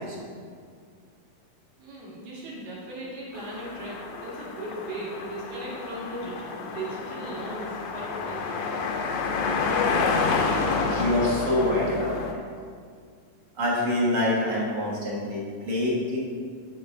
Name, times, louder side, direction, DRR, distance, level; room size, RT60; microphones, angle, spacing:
voice 1, 1.8-8.9, right 1 dB, 70° right, -5 dB, 3.1 m, -37 dB
sound 1, 3.3-12.3, left 4 dB, 90° left, 1.3 m, -29 dB
voice 2, 10.9-12.4 13.6-16.2, left 1 dB, 50° right, -4 dB, 1.3 m, -26 dB
7.5 x 7.4 x 3.7 m, 2.1 s
omnidirectional pair, 3.6 m